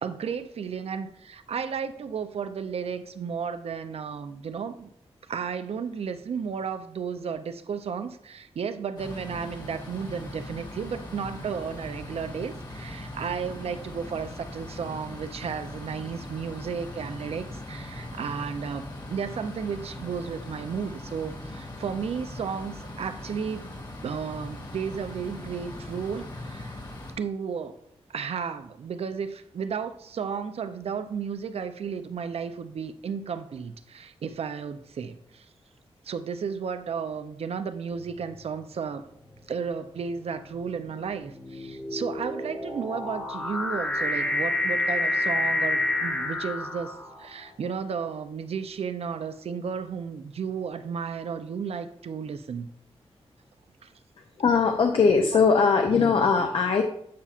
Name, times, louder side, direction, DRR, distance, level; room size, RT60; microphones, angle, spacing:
voice 1, 0.0-4.9 5.3-23.6 24.0-26.8 27.2-27.8 28.1-35.5 36.0-39.1 39.5-52.7 53.8-53.9, right 6 dB, 70° right, 10 dB, 0.5 m, -33 dB
sound 1, 9.0-27.1, left 1 dB, 40° left, 1.7 m, -40 dB
sound 2, 38.0-38.4 39.2-47.5, left 2 dB, 15° left, 1.0 m, -29 dB
voice 2, 54.4-56.8, left 5 dB, 60° left, 4 dB, 0.6 m, -20 dB
8.3 x 5.5 x 2.5 m, 0.70 s
wide cardioid pair, 115°, 11 cm